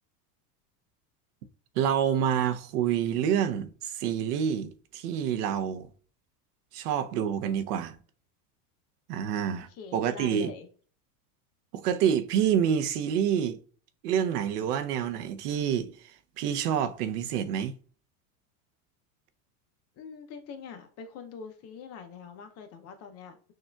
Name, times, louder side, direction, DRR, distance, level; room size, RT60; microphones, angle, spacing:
voice 1, 1.8-5.9 6.7-8.0 9.1-10.5 11.7-13.6 14.0-16.1 16.4-17.7, right 9 dB, 75° right, 0.7 m, -27 dB
voice 2, 9.7-10.7 20.0-23.5, left 6 dB, 35° left, 0.5 m, -44 dB
6.3 x 2.4 x 2.2 m
supercardioid pair, 130°, 47 cm